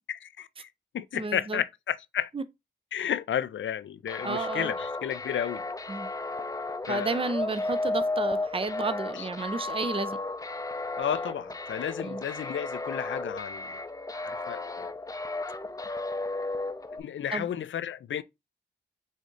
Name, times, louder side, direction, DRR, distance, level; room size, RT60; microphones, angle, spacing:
voice 1, 0.1-0.7 0.9-2.3 2.9-5.6 6.9-7.2 9.1-9.3 11.0-13.8 14.1-14.9 17.0-18.2, left 9 dB, 80° left, 0.4 m, -32 dB
voice 2, 1.1-1.6 2.3-2.4 4.2-4.7 5.9-6.1 6.9-10.2 12.0-12.2 17.3-17.5, right 3 dB, 30° right, 0.6 m, -31 dB
sound 1, 4.1-17.0, left 2 dB, 20° left, 0.5 m, -34 dB
5.0 x 2.7 x 3.9 m
cardioid pair, 50°, 19 cm